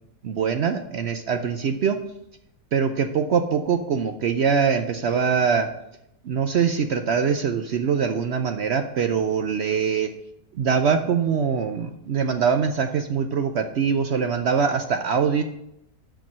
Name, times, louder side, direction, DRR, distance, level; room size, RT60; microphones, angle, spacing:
voice 1, 0.2-2.0 2.7-5.7 6.2-10.1 10.6-15.4, right 6 dB, 75° right, 7 dB, 0.6 m, -23 dB
6.9 x 6.0 x 7.2 m, 0.82 s
omnidirectional pair, 1.7 m